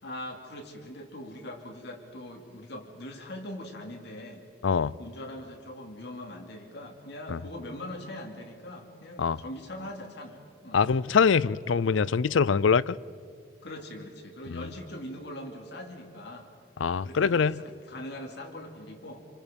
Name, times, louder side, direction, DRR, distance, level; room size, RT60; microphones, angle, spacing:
voice 1, 0.0-4.4 5.0-10.8 13.6-16.5 17.0-19.2, left 1 dB, 60° left, 2 dB, 2.7 m, -41 dB
voice 2, 10.7-13.0 16.8-17.5, left 5 dB, 80° left, 20 dB, 0.5 m, -23 dB
27.5 x 26.0 x 5.3 m, 2.2 s
head